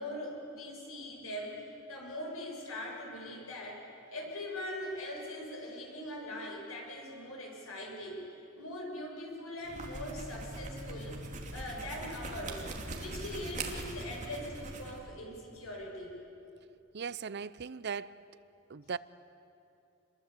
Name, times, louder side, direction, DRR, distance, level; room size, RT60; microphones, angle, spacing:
voice 1, 0.0-3.8 4.1-8.2 8.5-11.2 11.5-12.6 12.9-16.1, left 1 dB, 85° left, -1 dB, 6.8 m, -41 dB
sound 1, 9.6-15.0, right 2 dB, 35° right, 2.7 m, -41 dB
voice 2, 16.9-18.2 18.7-19.0, right 6 dB, 50° right, 17 dB, 0.6 m, -38 dB
27.5 x 22.0 x 8.3 m, 2.7 s
head